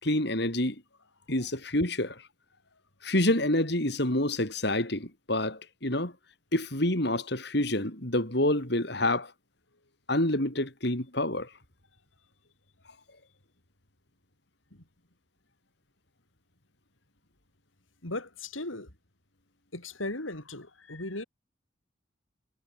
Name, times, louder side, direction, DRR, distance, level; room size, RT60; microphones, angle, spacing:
voice 1, 0.0-0.8 1.3-2.2 3.0-6.1 6.5-9.3 10.1-11.5, left 1 dB, 55° left, 4.5 m, -27 dB
voice 2, 18.0-18.9 19.7-21.2, left 2 dB, 85° left, 5.1 m, -37 dB
head